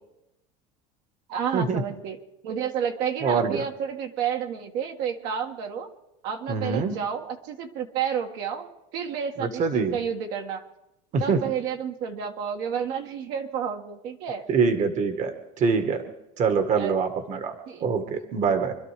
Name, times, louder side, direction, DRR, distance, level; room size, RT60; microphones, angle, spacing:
voice 1, 1.3-2.2 2.4-5.9 6.2-8.7 8.9-10.6 11.2-14.4 16.8-17.0 17.7-17.8, right 8 dB, 70° right, 3 dB, 1.8 m, -30 dB
voice 2, 3.2-3.6 6.5-6.9 9.4-10.0 11.1-11.5 14.5-16.0 16.4-17.5 17.8-18.7, right 5 dB, 40° right, 7 dB, 1.5 m, -24 dB
25.5 x 12.0 x 3.4 m, 0.90 s
supercardioid pair, 120°, 18 cm